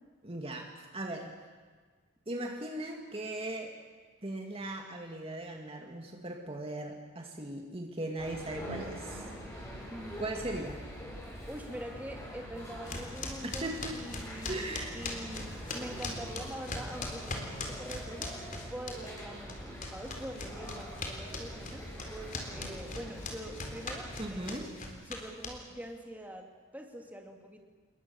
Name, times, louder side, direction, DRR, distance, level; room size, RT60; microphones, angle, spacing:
voice 1, 0.2-1.3 2.3-3.7 4.2-9.3 10.2-10.8 13.4-13.9 14.5-15.0 24.2-24.7, right 1 dB, 30° right, 2 dB, 2.2 m, -38 dB
sound 1, 8.2-24.6, equal, 15° left, 7.6 m, -44 dB
voice 2, 9.9-10.2 11.5-18.3 18.7-26.5 26.7-27.6, right 1 dB, 10° right, 2 dB, 2.8 m, -44 dB
sound 2, 12.9-19.2 19.5-25.8, left 3 dB, 40° left, 4.0 m, -40 dB
28.5 x 22.0 x 7.2 m, 1.5 s
head